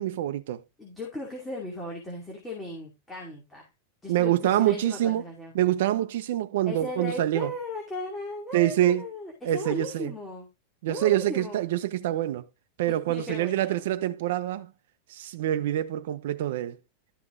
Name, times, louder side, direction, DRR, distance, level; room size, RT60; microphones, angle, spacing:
voice 1, 0.0-0.6 4.1-5.2 5.5-7.5 8.5-9.1 9.4-10.1 10.8-12.5 12.8-14.7 15.1-16.8, right 13 dB, 65° right, 0.7 m, -26 dB
voice 2, 0.8-3.7 4.0-5.5 6.7-10.5 10.9-11.6 12.9-13.8, left 1 dB, 5° left, 2.4 m, -37 dB
12.0 x 5.9 x 3.7 m
supercardioid pair, 165°, 0 cm